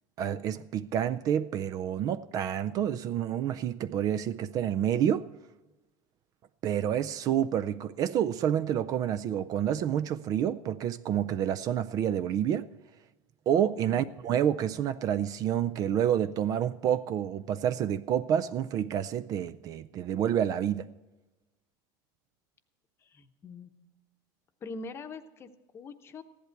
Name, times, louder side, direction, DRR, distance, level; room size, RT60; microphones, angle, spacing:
voice 1, 0.2-5.3 6.6-12.7 13.5-20.9, right 9 dB, 35° right, 0.4 m, -28 dB
voice 2, 23.0-23.7 24.6-26.2, left 3 dB, 25° left, 0.9 m, -43 dB
15.5 x 11.0 x 4.5 m
supercardioid pair, 150°, 10 cm